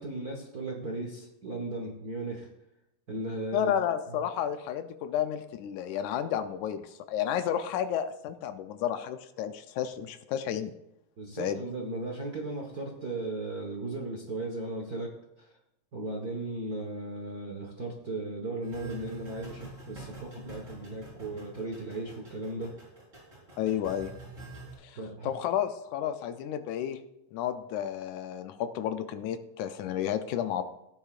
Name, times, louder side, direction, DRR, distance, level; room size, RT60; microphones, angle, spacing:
voice 1, 0.0-2.5 3.1-3.7 4.1-4.2 11.2-15.1 15.4-15.6 15.9-22.7 24.9-25.3, right 2 dB, 50° right, -1 dB, 1.1 m, -36 dB
voice 2, 3.5-10.7 11.4-11.6 23.6-24.1 24.8-25.0 25.2-27.0 27.3-30.6, left 10 dB, 80° left, 9 dB, 2.0 m, -31 dB
sound 1, 18.6-24.7, right 2 dB, 25° right, 4.7 m, -47 dB
15.0 x 9.7 x 2.5 m, 0.83 s
omnidirectional pair, 3.5 m